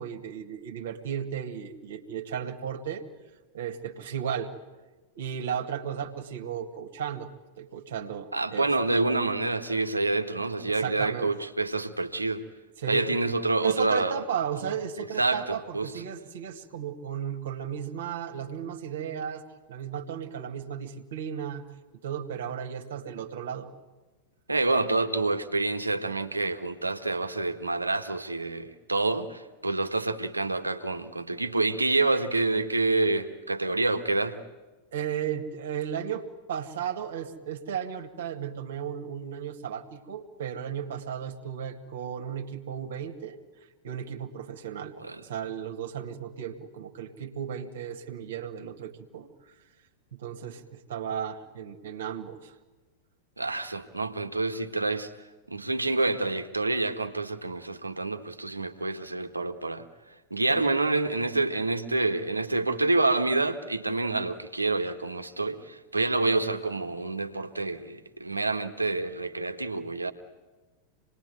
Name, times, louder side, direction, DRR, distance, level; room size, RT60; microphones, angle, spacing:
voice 1, 0.0-3.0 3.5-4.5 5.2-7.3 7.6-9.0 10.7-11.3 12.8-13.2 13.6-19.4 19.7-21.6 22.0-23.7 34.9-43.4 43.8-49.3 50.1-52.6 60.5-60.6, right 8 dB, 60° right, 4 dB, 2.1 m, -35 dB
voice 2, 8.3-12.4 12.9-14.2 15.2-15.9 24.5-34.4 45.0-45.2 53.4-55.1 55.5-59.8 60.3-70.1, right 2 dB, 80° right, 7 dB, 1.6 m, -27 dB
27.0 x 20.5 x 9.3 m, 1.2 s
figure-of-eight pair, 90°, 0 cm